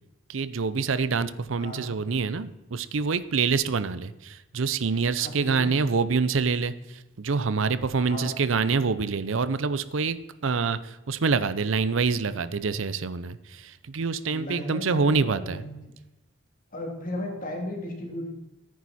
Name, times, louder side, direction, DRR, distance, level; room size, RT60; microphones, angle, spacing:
voice 1, 0.3-15.6, right 4 dB, 85° right, 14 dB, 0.6 m, -26 dB
voice 2, 5.2-5.7 8.0-8.3 14.3-15.8 16.7-18.3, left 1 dB, 45° left, 0 dB, 3.0 m, -35 dB
14.5 x 9.4 x 4.2 m, 0.99 s
head